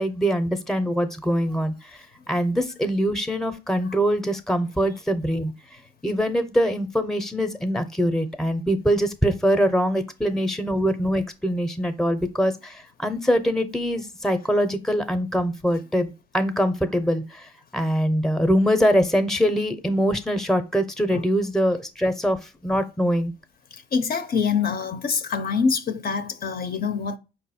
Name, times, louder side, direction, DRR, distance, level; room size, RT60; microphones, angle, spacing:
voice 1, 0.0-1.7 2.3-5.5 6.0-17.4 17.7-22.4 22.6-23.3, equal, ahead, 0.6 m, -23 dB
voice 2, 23.9-27.2, left 5 dB, 50° left, 0.6 m, -25 dB
4.9 x 2.3 x 4.1 m
cardioid pair, 90°, 20 cm